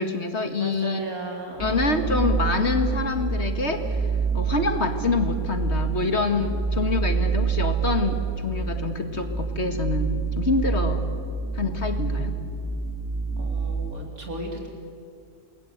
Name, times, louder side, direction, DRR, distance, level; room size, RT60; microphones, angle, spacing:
voice 1, 0.0-1.0 1.6-4.0 4.3-11.0 11.6-12.4, left 3 dB, 50° left, 6 dB, 2.1 m, -26 dB
voice 2, 0.6-1.8 13.4-14.7, right 2 dB, 80° right, 1 dB, 4.4 m, -35 dB
sound 1, 1.6-14.1, right 4 dB, 15° right, 2.0 m, -27 dB
28.0 x 20.0 x 8.2 m, 2.4 s
omnidirectional pair, 1.5 m